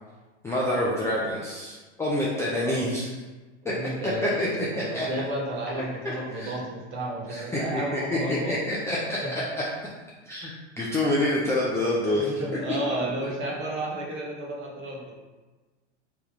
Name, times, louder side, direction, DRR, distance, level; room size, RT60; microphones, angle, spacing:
voice 1, 0.4-3.1 4.2-5.1 6.0-6.6 7.3-8.2 8.5-9.4 10.3-12.3 13.2-13.3, left 1 dB, 10° left, -6 dB, 0.4 m, -27 dB
voice 2, 3.6-8.6 9.2-9.3 12.2-15.1, right 1 dB, 35° right, -3 dB, 1.3 m, -32 dB
3.4 x 2.7 x 3.7 m, 1.3 s
hypercardioid pair, 110°, 35 cm